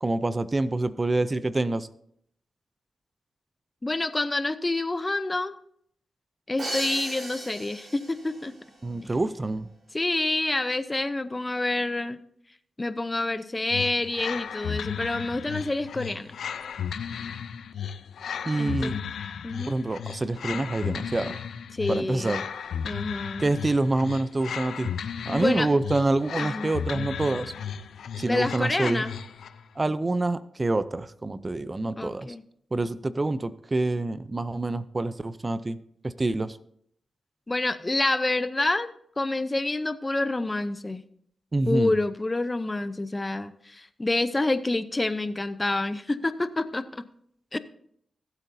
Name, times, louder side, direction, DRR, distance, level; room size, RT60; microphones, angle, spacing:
voice 1, 0.0-1.9 8.8-9.7 18.5-19.0 19.7-21.4 21.9-22.4 23.4-24.9 25.3-27.5 28.2-29.0 29.8-32.3 32.7-35.8 36.0-36.6 41.5-41.9, right 2 dB, 30° right, 14 dB, 0.5 m, -26 dB
voice 2, 3.8-5.5 6.5-8.5 9.0-9.1 9.9-12.2 12.8-16.3 18.6-19.0 19.4-19.7 21.7-22.4 22.8-23.5 25.3-25.7 26.4-26.7 28.2-29.1 32.0-32.4 37.5-41.0 41.7-47.0 47.5-47.6, left 2 dB, 25° left, 12 dB, 0.7 m, -28 dB
Crash cymbal, 6.6-8.4, right 1 dB, 55° right, 5.0 m, -35 dB
sound 1, 13.7-29.6, left 7 dB, 80° left, 0.5 m, -35 dB
18.5 x 8.2 x 2.7 m, 0.68 s
cardioid pair, 65°, 0 cm